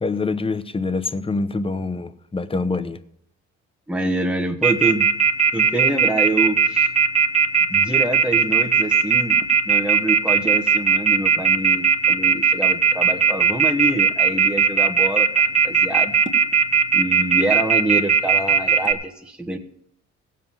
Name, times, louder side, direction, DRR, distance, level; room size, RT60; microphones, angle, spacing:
voice 1, 0.0-3.0, left 3 dB, 20° left, 0.9 m, -25 dB
voice 2, 3.9-5.1 5.5-6.9 7.7-15.3 15.6-16.2 16.9-19.6, right 2 dB, 5° right, 1.3 m, -26 dB
Telephone, 4.6-18.9, right 7 dB, 25° right, 1.5 m, -17 dB
16.5 x 7.5 x 5.7 m
cardioid pair, 90°, 30 cm